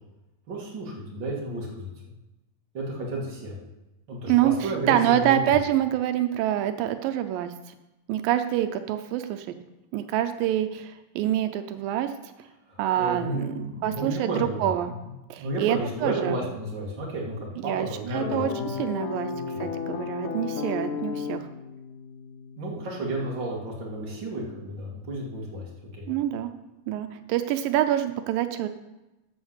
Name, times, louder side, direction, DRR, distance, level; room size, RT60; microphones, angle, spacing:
voice 1, 0.5-1.9 2.7-3.5 4.1-5.5 12.7-14.7 15.4-18.7 19.3-19.6 22.6-26.4, right 1 dB, 35° right, -3 dB, 2.8 m, -32 dB
voice 2, 4.3-7.5 8.1-9.6 9.9-12.3 12.8-14.9 15.3-16.4 17.6-19.3 19.6-21.4 26.1-26.5 26.9-28.7, right 11 dB, 85° right, 8 dB, 2.4 m, -26 dB
sound 1, 18.2-23.2, left 6 dB, 75° left, 2.3 m, -34 dB
13.0 x 5.0 x 7.2 m, 1.0 s
omnidirectional pair, 3.9 m